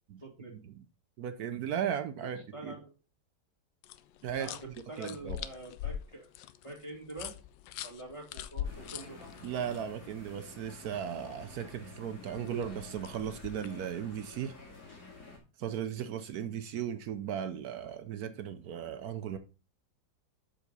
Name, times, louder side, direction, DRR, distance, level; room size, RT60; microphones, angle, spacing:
voice 1, 0.2-0.5 2.5-2.9 4.4-4.6 4.9-6.3 6.6-7.3 7.8-9.2, right 2 dB, 15° left, 2.1 m, -45 dB
voice 2, 1.2-2.8 4.2-4.5 5.0-5.4 9.4-14.5 15.6-19.4, right 9 dB, 70° right, 1.0 m, -36 dB
sound 1, 3.8-9.8 12.4-13.8, left 10 dB, 80° left, 1.2 m, -42 dB
sound 2, 8.6-15.4, left 3 dB, 60° left, 2.7 m, -50 dB
7.2 x 5.8 x 4.1 m
omnidirectional pair, 2.0 m